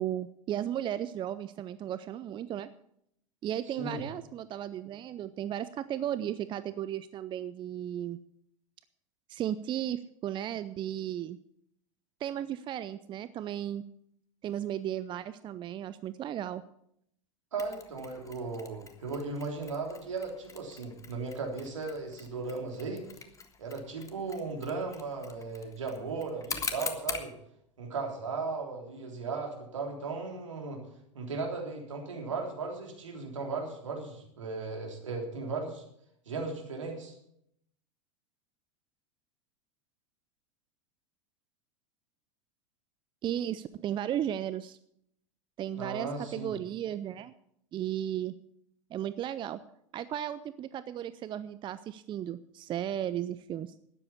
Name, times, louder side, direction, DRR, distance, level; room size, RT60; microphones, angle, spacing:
voice 1, 0.0-2.7 3.4-8.2 9.3-11.4 12.2-13.8 14.4-16.6 43.2-44.8 45.6-47.3 47.7-48.3 48.9-49.6 49.9-53.7, right 11 dB, 30° right, 15 dB, 0.6 m, -35 dB
voice 2, 17.5-23.0 23.6-27.3 27.8-30.8 31.1-35.8 36.3-37.1 45.8-46.5, right 4 dB, 75° right, 1 dB, 3.5 m, -36 dB
Mechanisms, 17.6-27.3, left 5 dB, 20° left, 1.5 m, -43 dB
13.0 x 9.8 x 7.0 m, 0.73 s
figure-of-eight pair, 85°, 16 cm